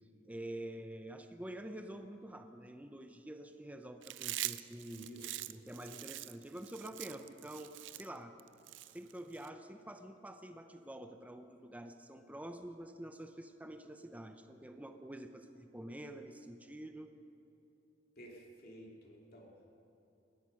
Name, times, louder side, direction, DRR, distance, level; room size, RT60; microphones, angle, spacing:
voice 1, 0.2-5.1 5.5-8.4 8.9-17.1, right 1 dB, 10° right, 7 dB, 0.6 m, -47 dB
Chewing mastication, 4.0-9.5, right 15 dB, 65° right, 0.4 m, -43 dB
voice 2, 4.8-5.4 18.2-19.8, right 1 dB, 50° left, -1 dB, 2.7 m, -53 dB
20.5 x 11.0 x 5.8 m, 2.9 s
head